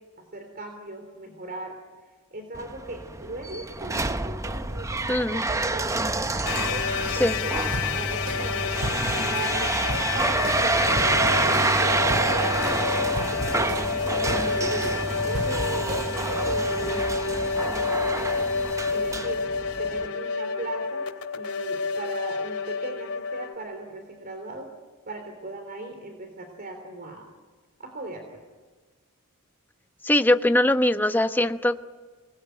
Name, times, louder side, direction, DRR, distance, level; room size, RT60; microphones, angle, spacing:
voice 1, 0.2-1.8 2.1-7.6 7.9-12.7 13.1-18.5 18.9-19.4 19.8-21.1 21.3-24.7 25.1-27.3 27.8-28.4, right 2 dB, 45° right, 4 dB, 3.4 m, -38 dB
sound 1, 2.5-20.1, right 2 dB, 15° right, 0.7 m, -28 dB
voice 2, 5.1-5.4 7.2-7.4 30.0-31.8, left 1 dB, 10° left, 8 dB, 1.0 m, -21 dB
sound 2, 6.4-23.5, left 4 dB, 85° left, 2.9 m, -29 dB
sound 3, 7.7-16.4, right 1 dB, 80° right, 3.1 m, -37 dB
26.0 x 20.5 x 9.2 m, 1.4 s
head